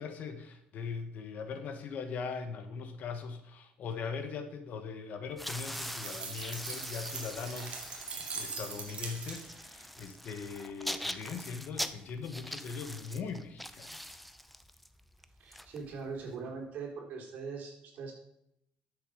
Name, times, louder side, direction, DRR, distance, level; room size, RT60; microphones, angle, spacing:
voice 1, 0.0-8.1 8.3-14.2, left 5 dB, 55° left, 8 dB, 1.2 m, -40 dB
sound 1, 5.3-16.3, equal, ahead, 0.5 m, -43 dB
sound 2, 5.5-9.7, right 5 dB, 40° right, 2.0 m, -42 dB
voice 2, 15.4-18.1, right 5 dB, 60° right, -1 dB, 3.3 m, -41 dB
11.5 x 6.9 x 4.9 m, 0.78 s
cardioid pair, 145°, 3 cm